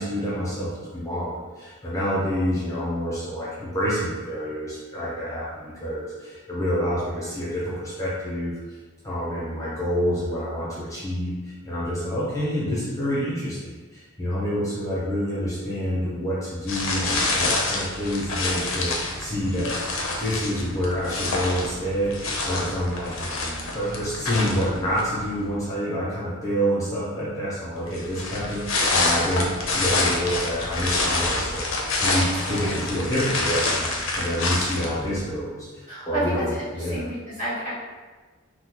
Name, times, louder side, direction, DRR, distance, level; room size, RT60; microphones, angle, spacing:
voice 1, 0.0-8.8 9.0-19.8 20.2-33.9 34.1-37.0, equal, 15° left, -8 dB, 0.6 m, -28 dB
sound 1, 16.7-25.3 27.9-35.2, left 2 dB, 85° left, 0.5 m, -27 dB
voice 2, 32.5-32.8 35.9-37.8, right 1 dB, 40° right, -10 dB, 1.2 m, -30 dB
3.6 x 2.1 x 2.9 m, 1.3 s
head